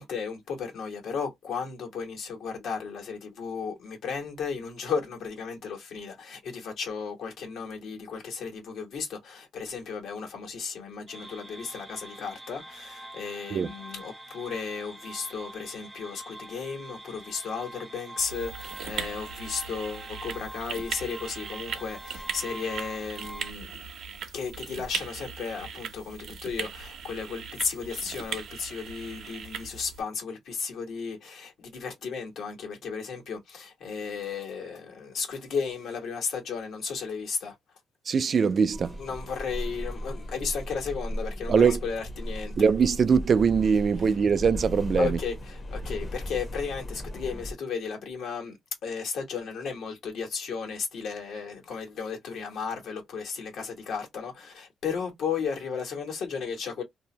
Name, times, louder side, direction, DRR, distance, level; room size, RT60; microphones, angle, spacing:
voice 1, 0.0-23.9 24.3-37.6 39.0-42.7 45.0-48.6 48.8-56.8, left 5 dB, 70° left, 1.3 m, -34 dB
sound 1, 11.1-23.5, right 2 dB, 10° right, 0.6 m, -44 dB
sound 2, 18.2-30.0, right 6 dB, 70° right, 0.7 m, -39 dB
voice 2, 38.1-39.0 41.5-41.8 42.6-45.2, right 6 dB, 45° right, 0.3 m, -22 dB
sound 3, 38.7-47.5, equal, 35° left, 0.8 m, -36 dB
2.7 x 2.0 x 2.8 m
cardioid pair, 90°, 0 cm